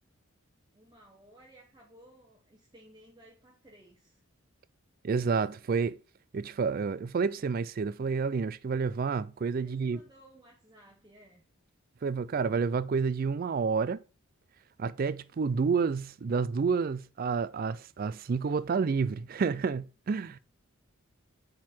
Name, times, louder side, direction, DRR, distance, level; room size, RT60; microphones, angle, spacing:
voice 1, 0.7-4.2 9.6-11.4, right 1 dB, 20° right, 1.0 m, -57 dB
voice 2, 5.0-6.0 6.3-10.0 12.0-14.0 14.8-20.4, right 5 dB, 40° right, 0.3 m, -29 dB
7.4 x 3.8 x 4.3 m
head